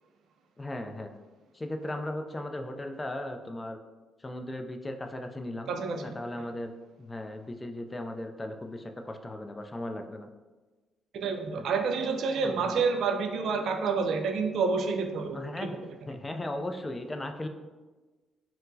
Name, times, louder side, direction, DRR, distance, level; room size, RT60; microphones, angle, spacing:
voice 1, 0.6-1.1 1.5-3.8 4.2-6.7 7.0-10.3 11.5-11.6 12.4-12.7 15.3-15.8 16.1-17.5, left 1 dB, 20° left, 5 dB, 0.3 m, -37 dB
voice 2, 5.7-6.1 11.1-15.4, right 5 dB, 70° right, 5 dB, 0.3 m, -28 dB
4.2 x 2.0 x 2.6 m, 1.2 s
cardioid pair, 90°, 0 cm